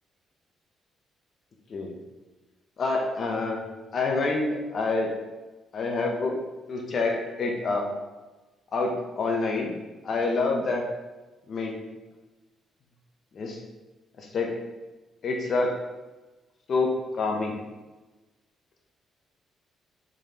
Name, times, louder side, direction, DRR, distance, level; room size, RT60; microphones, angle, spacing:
voice 1, 2.8-3.6 3.9-5.1 5.7-6.4 6.7-7.9 8.7-9.7 10.0-10.8 11.5-11.8 13.3-13.6 14.2-14.6 15.2-15.8 16.7-17.6, left 3 dB, 50° left, 1 dB, 0.6 m, -27 dB
3.7 x 3.2 x 2.8 m, 1.2 s
cardioid pair, 90°, 0 cm